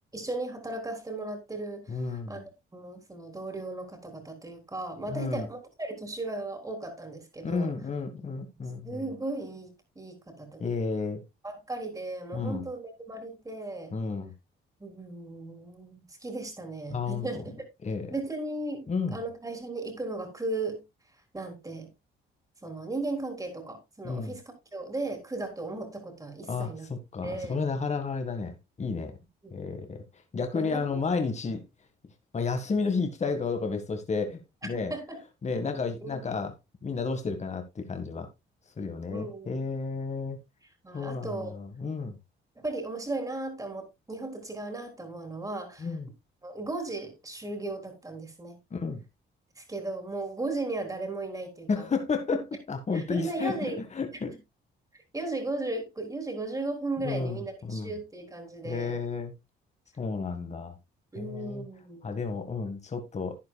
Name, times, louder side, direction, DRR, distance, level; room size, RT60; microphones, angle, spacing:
voice 1, 0.1-2.4 2.7-7.7 8.8-10.6 11.4-13.9 14.8-17.5 18.1-20.8 21.3-21.9 22.6-26.9 27.2-27.6 29.4-29.8 30.5-31.0 34.7-35.2 36.0-36.3 39.1-39.5 40.8-41.6 42.6-45.9 46.4-48.6 49.6-51.7 52.3-52.4 52.9-53.8 54.3-54.4 54.9-59.0 61.1-62.1, right 2 dB, 15° right, 3.6 m, -36 dB
voice 2, 1.9-2.4 5.1-5.5 7.4-9.1 10.6-11.2 12.3-12.7 13.9-14.3 16.9-17.3 17.8-18.1 18.9-19.2 24.0-24.3 26.5-29.2 29.5-30.0 30.3-31.6 32.3-34.9 35.4-36.5 36.8-38.3 38.8-40.4 40.9-42.2 45.8-46.1 48.7-49.0 51.7-54.3 57.0-57.9 58.6-59.3 60.0-60.8 61.2-61.7 62.0-63.4, left 4 dB, 35° left, 1.7 m, -32 dB
11.5 x 9.5 x 2.3 m
cardioid pair, 90°, 20 cm